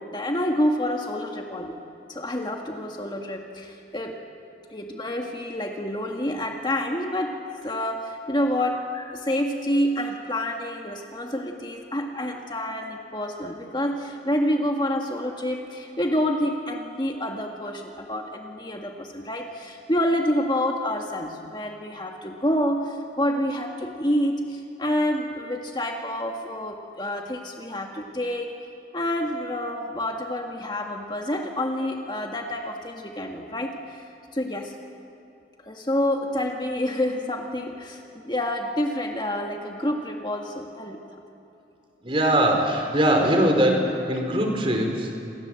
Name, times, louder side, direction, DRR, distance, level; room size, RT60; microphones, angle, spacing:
voice 1, 0.1-1.8 2.1-4.2 4.7-7.3 7.6-28.5 28.9-34.0 34.3-34.7 35.6-41.0, left 1 dB, 25° left, 2 dB, 1.8 m, -28 dB
voice 2, 42.0-45.4, right 1 dB, 30° right, 3 dB, 4.4 m, -22 dB
28.5 x 27.0 x 7.8 m, 2.8 s
head